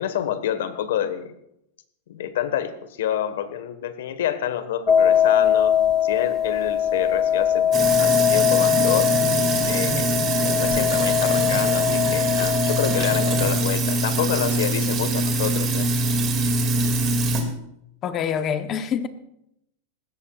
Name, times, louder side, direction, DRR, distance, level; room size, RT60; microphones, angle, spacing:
voice 1, 0.0-1.3 2.1-2.7 3.0-5.8 6.0-9.1 9.6-10.1 10.4-15.9, left 10 dB, 80° left, 1.5 m, -28 dB
sound 1, 4.9-13.5, left 9 dB, 10° left, 0.5 m, -21 dB
Sink (filling or washing), 7.7-17.4, right 2 dB, 25° right, 2.4 m, -23 dB
voice 2, 18.0-19.1, left 8 dB, 30° left, 1.0 m, -25 dB
19.5 x 16.5 x 2.5 m
supercardioid pair, 155°, 0 cm